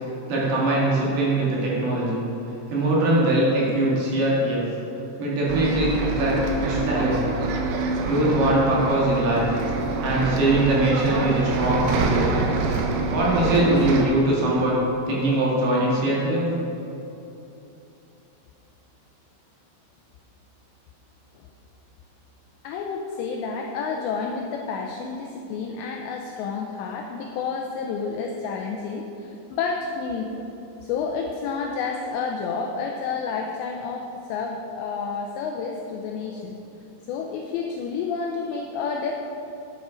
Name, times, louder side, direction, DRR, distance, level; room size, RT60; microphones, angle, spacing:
voice 1, 0.3-2.2 2.7-4.6 5.2-7.2 7.8-9.5 10.0-12.5 13.1-14.8 15.1-16.5, right 1 dB, 60° right, -5 dB, 3.5 m, -22 dB
Bus, 5.5-14.0, right 3 dB, 85° right, 3.6 m, -26 dB
voice 2, 22.6-30.5 30.8-36.6 37.1-39.1, left 5 dB, 85° left, 2 dB, 2.5 m, -30 dB
10.5 x 9.5 x 5.0 m, 2.9 s
omnidirectional pair, 5.8 m